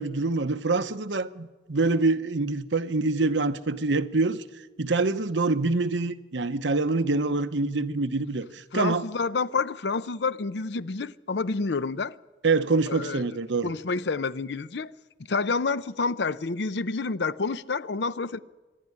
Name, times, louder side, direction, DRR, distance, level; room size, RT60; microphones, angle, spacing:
voice 1, 0.0-4.4 4.8-9.1 12.4-13.7, right 3 dB, 85° right, 1.0 m, -25 dB
voice 2, 8.7-12.1 12.9-13.2 13.6-14.9 15.2-18.4, left 4 dB, 70° left, 0.6 m, -29 dB
25.5 x 11.5 x 9.7 m
head